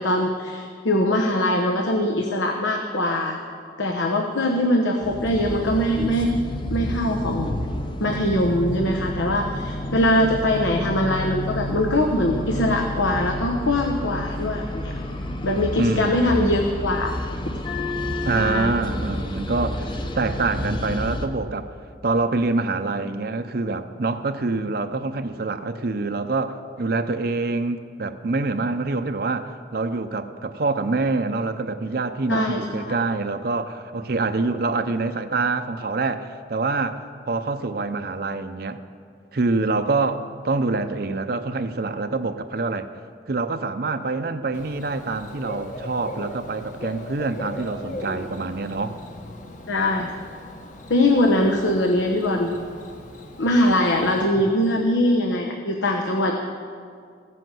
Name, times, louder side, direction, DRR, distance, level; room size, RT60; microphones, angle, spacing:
voice 1, 0.0-3.4 3.8-6.3 6.7-7.5 8.0-14.9 15.4-17.1 18.3-18.7 32.3-32.9 49.7-50.1 50.9-52.5 53.4-56.4, left 1 dB, 90° left, 2 dB, 1.0 m, -22 dB
sound 1, 5.0-21.3, left 1 dB, 25° left, 0.7 m, -30 dB
voice 2, 15.8-16.3 18.2-21.7 22.0-38.8 39.3-42.9 43.3-49.0, right 3 dB, 55° right, 9 dB, 0.6 m, -26 dB
Bird / Cricket, 44.5-54.3, left 1 dB, 40° left, 1.1 m, -39 dB
15.5 x 7.8 x 7.6 m, 2.2 s
head